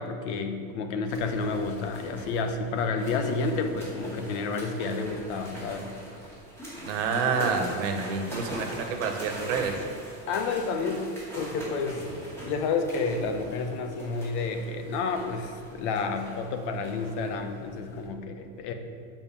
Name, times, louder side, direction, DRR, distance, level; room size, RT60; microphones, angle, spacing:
voice 1, 0.0-5.9 10.3-12.0 12.5-18.7, left 4 dB, 65° left, 6 dB, 1.0 m, -30 dB
sound 1, 1.1-18.1, right 1 dB, 5° left, 2.2 m, -42 dB
voice 2, 6.8-9.7, right 5 dB, 90° right, 4 dB, 1.3 m, -28 dB
7.3 x 5.1 x 7.2 m, 2.3 s
supercardioid pair, 170°, 37 cm